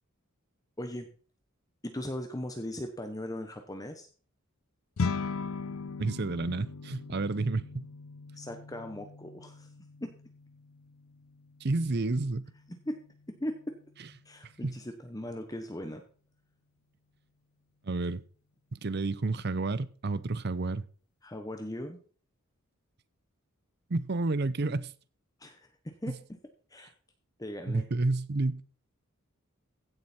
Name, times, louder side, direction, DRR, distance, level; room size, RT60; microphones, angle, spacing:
voice 1, 0.8-1.1 1.8-4.1 8.4-9.7 10.0-10.1 12.9-13.0 13.4-13.8 14.2-16.0 21.2-22.0 25.4-26.1 26.7-26.9 27.4-27.9, left 1 dB, 15° left, 1.0 m, -38 dB
sound 1, 5.0-14.4, left 4 dB, 75° left, 0.6 m, -40 dB
voice 2, 6.0-7.9 11.6-12.5 14.6-14.8 17.8-18.2 18.7-20.9 23.9-24.9 26.1-26.2 27.7-28.6, right 3 dB, 50° right, 0.6 m, -30 dB
15.5 x 7.7 x 4.3 m
head